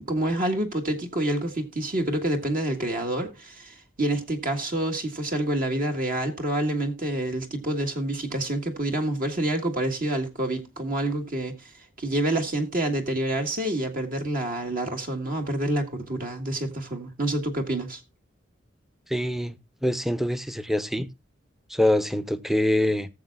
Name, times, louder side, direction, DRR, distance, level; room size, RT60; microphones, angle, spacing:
voice 1, 0.0-11.7 12.0-18.0, right 1 dB, 50° right, 1.7 m, -27 dB
voice 2, 19.1-19.6 19.8-21.1 21.7-23.1, left 1 dB, ahead, 0.7 m, -24 dB
18.5 x 7.3 x 2.2 m
head